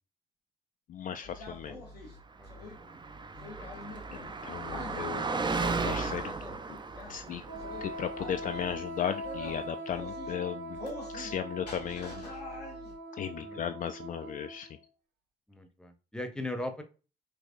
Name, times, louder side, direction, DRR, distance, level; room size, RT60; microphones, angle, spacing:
voice 1, 0.9-1.8 4.1-5.3 5.6-6.3 6.7-6.8 7.1-7.4 7.8-10.8 11.1-12.3 13.1-14.7, left 9 dB, 40° left, 7 dB, 0.4 m, -36 dB
sound 1, 1.2-2.8 3.3-4.2 4.7-5.0 5.5-6.6 6.9-7.2 7.6-7.8 8.2-8.8 9.2-9.6 9.9-10.3 10.7-11.4 11.6-13.0, left 2 dB, 90° left, 0.9 m, -45 dB
Car passing by, 2.5-8.4, right 4 dB, 20° right, 0.5 m, -35 dB
Wind instrument woodwind instrument, 7.4-14.8, right 1 dB, 80° right, 0.8 m, -41 dB
voice 2, 13.4-13.7 15.5-16.8, left 1 dB, 5° left, 7 dB, 0.9 m, -39 dB
5.3 x 3.2 x 2.5 m, 0.35 s
figure-of-eight pair, 40°, 20 cm